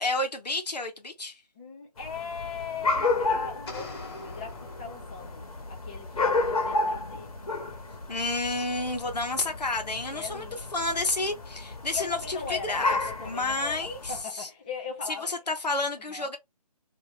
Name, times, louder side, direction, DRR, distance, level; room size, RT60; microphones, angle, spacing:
voice 1, 0.0-1.4 8.1-10.5 10.7-14.5 15.1-16.4, left 2 dB, 85° left, 1.1 m, -30 dB
voice 2, 1.6-7.3 10.1-10.6 11.9-15.3 16.1-16.3, left 6 dB, 15° left, 0.4 m, -39 dB
sound 1, 2.0-14.2, left 3 dB, 60° left, 1.3 m, -32 dB
sound 2, 3.7-5.6, left 2 dB, 40° left, 1.3 m, -43 dB
2.8 x 2.3 x 3.2 m
figure-of-eight pair, 155°, 21 cm